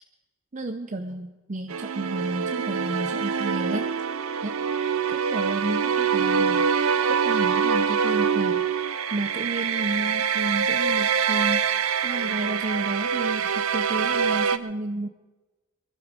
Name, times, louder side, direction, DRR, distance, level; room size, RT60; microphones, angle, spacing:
voice 1, 0.5-3.9 4.4-4.6 5.1-6.7 7.1-8.7 9.1-11.7 12.0-15.1, right 2 dB, 35° right, 9 dB, 0.6 m, -31 dB
sound 1, 1.7-14.6, right 6 dB, 80° right, 0.6 m, -25 dB
22.5 x 12.0 x 4.8 m, 1.2 s
head